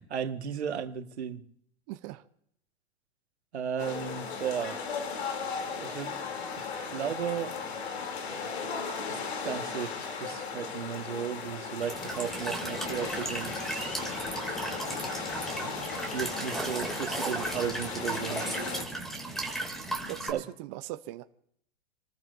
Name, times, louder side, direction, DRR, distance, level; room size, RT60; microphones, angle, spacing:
voice 1, 0.0-1.4 3.5-4.8 5.8-6.1 6.6-7.5 9.4-13.5 16.1-18.5 20.3-20.4, right 8 dB, 90° right, 1.7 m, -35 dB
voice 2, 1.9-2.2 20.1-21.2, right 16 dB, 40° right, 0.8 m, -39 dB
sound 1, 3.8-18.8, left 5 dB, 75° left, 3.2 m, -36 dB
Walk footsteps / Chirp tweet / Stream, 11.8-20.3, right 2 dB, ahead, 2.7 m, -35 dB
29.5 x 14.0 x 2.7 m
hypercardioid pair, 135°, 32 cm